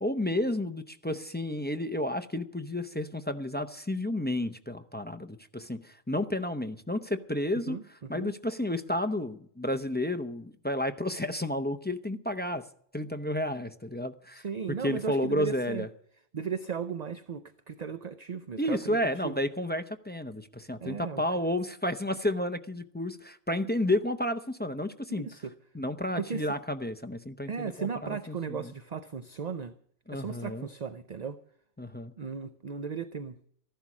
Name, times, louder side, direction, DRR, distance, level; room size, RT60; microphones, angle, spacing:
voice 1, 0.0-7.8 8.1-12.6 12.9-14.4 14.8-15.9 18.6-25.3 25.7-28.7 30.1-30.7 31.8-32.1, left 1 dB, 15° left, 9 dB, 0.4 m, -31 dB
voice 2, 7.7-8.3 14.3-15.9 16.3-19.0 19.2-19.3 20.8-21.2 25.1-25.5 26.2-26.6 27.4-29.7 30.1-31.4 32.2-33.4, right 6 dB, 40° right, 11 dB, 0.6 m, -36 dB
14.5 x 11.5 x 6.0 m, 0.66 s
omnidirectional pair, 1.3 m